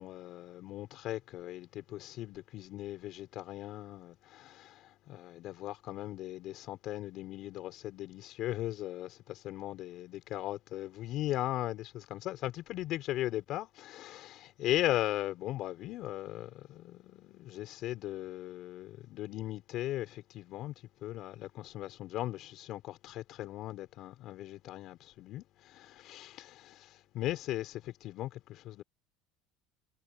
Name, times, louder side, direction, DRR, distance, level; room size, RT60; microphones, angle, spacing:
voice 1, 0.0-20.7 21.0-28.8, left 14 dB, 55° left, 4.1 m, -38 dB
supercardioid pair, 110°, 0 cm